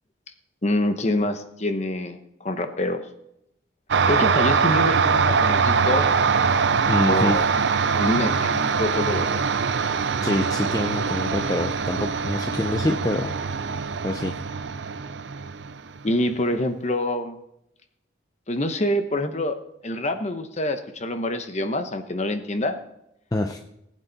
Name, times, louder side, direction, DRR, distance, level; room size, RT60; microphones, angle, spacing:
voice 1, 0.6-3.0 4.1-6.1 7.1-7.5 7.9-9.4 16.0-17.4 18.5-19.6 19.8-22.8, left 1 dB, 35° left, 8 dB, 1.0 m, -26 dB
sound 1, 3.9-16.0, right 5 dB, 65° right, 0.6 m, -23 dB
voice 2, 6.9-7.4 10.2-13.4 14.0-14.4 23.3-23.6, left 1 dB, 20° left, 5 dB, 0.6 m, -25 dB
18.5 x 8.5 x 4.1 m, 0.81 s
head